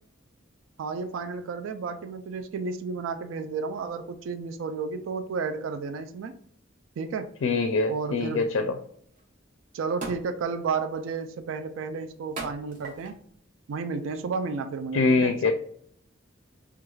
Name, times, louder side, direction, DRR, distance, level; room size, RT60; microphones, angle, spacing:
voice 1, 0.8-6.4 7.0-7.3 7.9-8.5 9.7-13.2 13.7-15.5, right 5 dB, 75° right, 8 dB, 0.3 m, -32 dB
voice 2, 7.4-8.8 14.9-15.5, left 4 dB, 80° left, 7 dB, 0.4 m, -24 dB
sound 1, 9.1-9.2 10.0-10.4 11.0-11.3 12.4-13.2 14.0-14.2, right 2 dB, 40° right, 0.8 m, -38 dB
4.4 x 2.4 x 2.3 m, 0.65 s
head